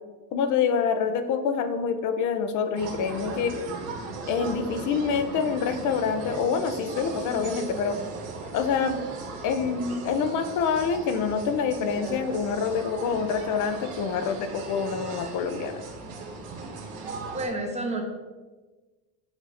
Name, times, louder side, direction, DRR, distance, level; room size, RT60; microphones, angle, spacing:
voice 1, 0.3-3.5 4.3-8.0 8.5-9.0 9.4-15.8, left 6 dB, 50° left, 9 dB, 0.7 m, -26 dB
sound 1, 2.7-17.5, right 3 dB, 85° right, 1.5 m, -38 dB
voice 2, 17.3-18.0, right 2 dB, 15° right, 1 dB, 1.1 m, -29 dB
8.0 x 2.8 x 5.0 m, 1.3 s
cardioid pair, 130°, 40 cm